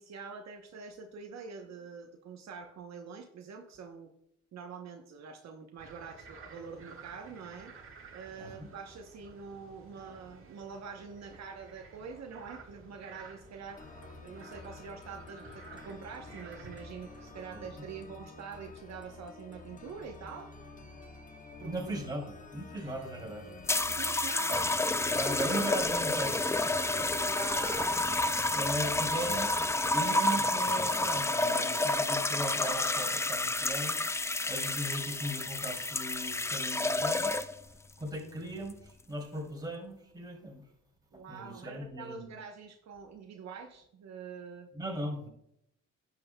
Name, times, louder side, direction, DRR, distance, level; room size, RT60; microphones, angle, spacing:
voice 1, 0.0-4.1 4.5-7.7 8.1-13.8 14.2-20.5 21.6-21.9 23.9-24.8 27.2-28.2 41.1-44.7, right 5 dB, 60° right, 3 dB, 0.9 m, -45 dB
sound 1, 5.8-17.5, right 4 dB, 45° right, 1.7 m, -53 dB
voice 2, 8.4-8.7 17.5-17.7 21.6-23.5 25.2-26.8 28.4-34.0 34.5-37.3 38.0-40.6 41.3-42.3 44.7-45.3, right 1 dB, 15° right, 0 dB, 2.7 m, -38 dB
sound 2, 13.8-29.8, left 3 dB, 25° left, 1.1 m, -49 dB
sound 3, 23.7-37.7 38.6-38.9, left 2 dB, 10° left, 0.3 m, -30 dB
10.5 x 7.6 x 2.2 m, 0.75 s
cardioid pair, 90°, 30 cm